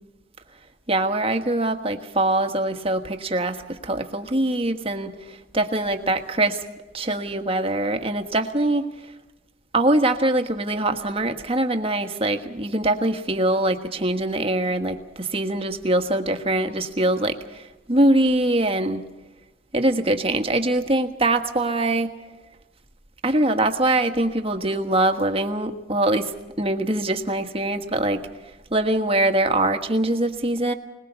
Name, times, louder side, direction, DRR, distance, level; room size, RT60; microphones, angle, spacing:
voice 1, 0.9-6.6 6.9-8.9 9.7-17.6 17.9-19.0 19.7-22.1 23.2-26.3 26.6-28.2 28.7-30.7, right 1 dB, 30° right, 6 dB, 1.4 m, -23 dB
21.5 x 20.5 x 6.9 m, 1.1 s
head